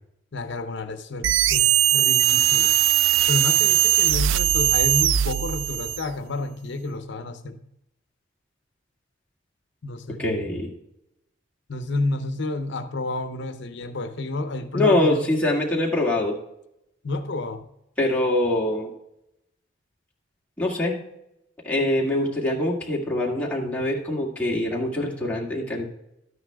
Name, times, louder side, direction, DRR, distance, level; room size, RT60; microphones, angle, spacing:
voice 1, 0.3-2.8 3.3-7.6 9.8-10.2 11.7-15.3 17.0-17.6, left 2 dB, 65° left, 8 dB, 0.7 m, -30 dB
sound 1, 1.2-6.1, right 13 dB, 80° right, 0.3 m, -20 dB
voice 2, 10.2-10.7 14.7-16.4 18.0-18.9 20.6-21.0 21.6-25.9, left 1 dB, 10° left, -4 dB, 1.9 m, -24 dB
12.5 x 9.5 x 2.3 m, 0.84 s
head